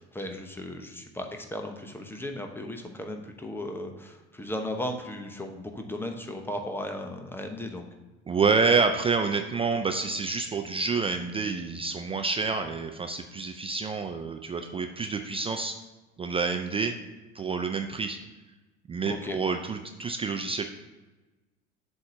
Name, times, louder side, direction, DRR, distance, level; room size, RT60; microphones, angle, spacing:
voice 1, 0.0-7.9 19.1-19.4, left 1 dB, 5° left, 4 dB, 0.8 m, -36 dB
voice 2, 8.3-15.7 16.2-16.9 17.3-18.2 18.9-20.6, right 4 dB, 15° right, 5 dB, 0.3 m, -28 dB
7.7 x 2.8 x 6.1 m, 1.2 s
hypercardioid pair, 70°, 35 cm